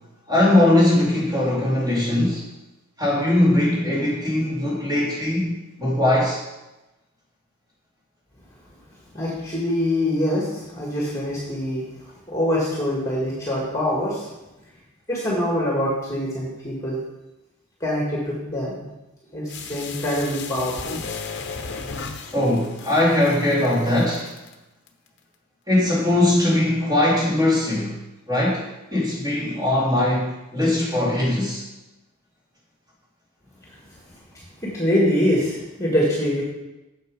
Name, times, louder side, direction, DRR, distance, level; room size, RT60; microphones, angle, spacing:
voice 1, 0.3-2.5 3.0-6.4 22.3-24.3 25.7-28.0 28.3-28.6 28.9-31.6, left 1 dB, 15° right, -6 dB, 2.8 m, -20 dB
voice 2, 9.1-14.3 15.1-17.0 17.8-18.8 19.3-21.0 34.6-36.4, left 1 dB, 15° left, -4 dB, 1.8 m, -24 dB
sound 1, 19.5-24.5 24.9-25.0, left 5 dB, 55° left, 0.9 m, -35 dB
8.1 x 7.1 x 5.3 m, 1.0 s
head